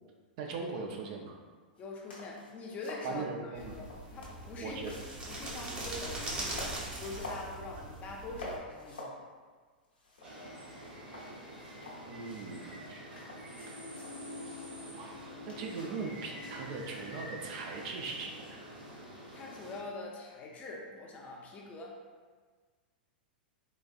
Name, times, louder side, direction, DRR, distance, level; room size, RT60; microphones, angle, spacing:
voice 1, 0.4-1.3 3.0-3.8 4.6-4.9 12.1-13.1 13.7-14.0 14.9-15.2 15.5-18.7, right 4 dB, 50° right, 2 dB, 0.5 m, -40 dB
sound 1, 1.8-1.9 2.1-3.1 3.8-5.6 6.0-6.1 6.5-7.5 7.9-8.1 8.4-9.2 9.5-9.6 9.8-10.7 11.1-12.4 12.9-14.2 15.5-15.8, left 1 dB, 80° left, 0.9 m, -47 dB
voice 2, 1.8-3.3 3.5-4.8 5.3-9.1 19.3-22.0, left 3 dB, 30° left, -1 dB, 0.6 m, -44 dB
sound 2, 3.6-8.6, right 1 dB, 25° right, 0.7 m, -41 dB
sound 3, 10.2-19.8, equal, 75° right, 1.0 m, -46 dB
4.0 x 2.4 x 2.3 m, 1.5 s
hypercardioid pair, 100°, 5 cm